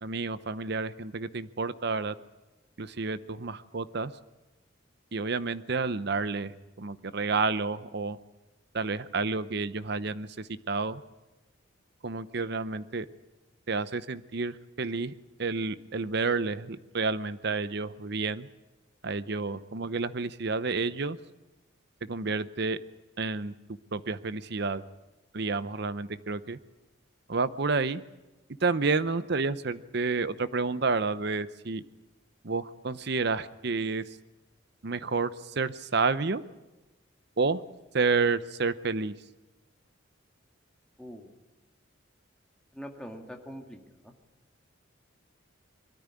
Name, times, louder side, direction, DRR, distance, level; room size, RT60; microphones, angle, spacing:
voice 1, 0.0-2.1 2.8-4.1 5.1-8.2 8.7-11.0 12.0-13.1 13.7-15.1 15.4-18.5 19.0-21.2 22.1-22.8 23.2-23.5 23.9-24.8 25.3-26.6 27.3-28.0 28.6-31.8 32.4-34.0 34.8-36.4 37.4-37.6 37.9-39.1, right 4 dB, 55° right, 14 dB, 0.7 m, -30 dB
voice 2, 41.0-41.3 42.7-44.1, equal, 5° left, 2 dB, 2.0 m, -43 dB
22.5 x 13.5 x 9.9 m, 1.1 s
head